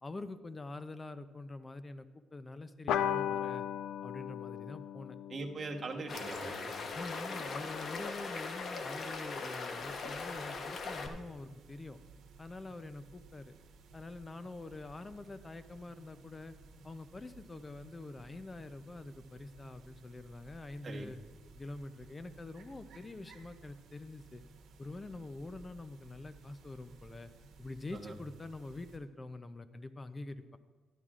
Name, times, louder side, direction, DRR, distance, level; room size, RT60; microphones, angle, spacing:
voice 1, 0.0-2.1 2.3-3.7 4.0-5.2 6.9-12.0 12.4-13.5 13.9-16.6 16.8-21.2 21.5-24.4 24.8-27.3 27.6-30.6, left 2 dB, 25° left, 11 dB, 0.5 m, -45 dB
sound 1, 2.9-7.8, left 10 dB, 90° left, 0.4 m, -38 dB
voice 2, 5.3-6.8 20.8-21.1 27.9-28.2, right 3 dB, 40° right, 2 dB, 1.1 m, -41 dB
Tumbling stream in mountain forest (winter), 6.1-11.1, left 4 dB, 50° left, 0.9 m, -40 dB
sound 2, 9.8-29.0, right 3 dB, 85° right, 1.0 m, -57 dB
11.5 x 11.0 x 2.4 m, 1.3 s
cardioid pair, 90°, 0 cm